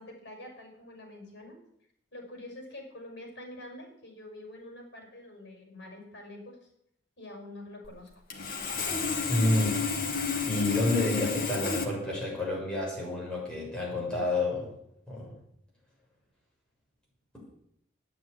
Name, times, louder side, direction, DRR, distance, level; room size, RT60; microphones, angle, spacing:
voice 1, 0.0-1.6 2.1-6.7 7.2-8.1, left 1 dB, 65° left, 2 dB, 5.9 m, -46 dB
Sawing, 7.8-7.9 8.3-11.8, left 5 dB, 50° left, 2.2 m, -31 dB
voice 2, 9.3-9.8 10.5-14.7 15.1-15.3, left 2 dB, 5° left, -5 dB, 6.6 m, -29 dB
9.6 x 9.5 x 9.8 m, 0.73 s
head